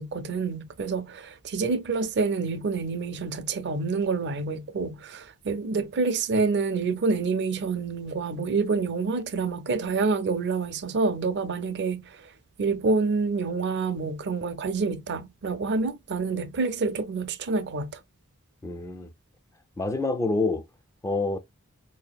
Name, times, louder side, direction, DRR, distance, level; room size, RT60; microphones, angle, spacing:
voice 1, 0.0-12.0 12.6-18.0, right 4 dB, 55° right, 0.5 m, -27 dB
voice 2, 18.6-19.1 19.8-20.6 21.0-21.4, left 3 dB, 15° left, 0.3 m, -27 dB
4.7 x 2.8 x 2.2 m
head